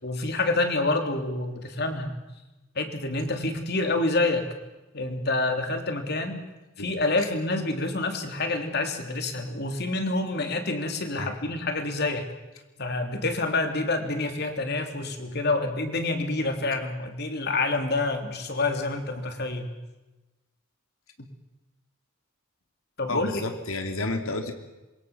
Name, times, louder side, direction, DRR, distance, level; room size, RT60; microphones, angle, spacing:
voice 1, 0.0-2.1 2.7-4.5 4.9-6.5 6.8-12.3 12.8-19.7 21.2-21.3 23.0-23.4, left 2 dB, 50° left, 5 dB, 3.3 m, -27 dB
voice 2, 23.1-24.5, left 2 dB, 90° left, 5 dB, 2.8 m, -31 dB
26.0 x 23.0 x 7.3 m, 1.1 s
head